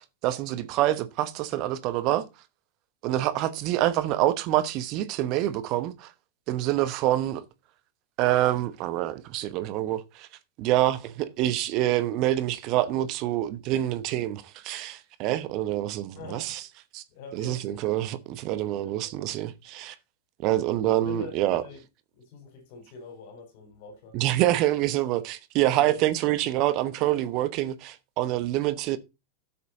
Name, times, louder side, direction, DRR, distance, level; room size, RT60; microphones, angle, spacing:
voice 1, 0.0-2.3 3.0-6.1 6.5-7.4 8.2-10.3 10.6-16.6 16.9-17.0 17.3-19.9 20.4-21.6 24.1-29.0, right 14 dB, 40° right, 1.0 m, -26 dB
voice 2, 16.1-16.6 17.1-17.8 18.8-19.2 21.0-21.8 22.1-24.1 25.7-26.0, left 4 dB, 50° left, 4.1 m, -44 dB
12.5 x 7.4 x 4.1 m
figure-of-eight pair, 90°, 0 cm